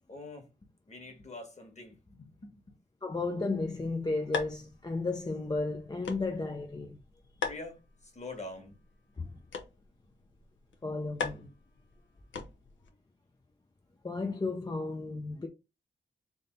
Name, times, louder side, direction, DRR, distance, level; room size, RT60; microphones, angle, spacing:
voice 1, 0.1-2.8 7.4-8.8 10.1-10.2, left 2 dB, 35° left, 1.5 m, -46 dB
voice 2, 3.0-7.0 9.2-9.4 10.8-11.5 14.0-15.5, left 3 dB, 20° left, 0.5 m, -33 dB
sound 1, 3.6-12.9, left 5 dB, 85° left, 0.8 m, -42 dB
3.6 x 2.8 x 3.8 m
wide cardioid pair, 95°, 19 cm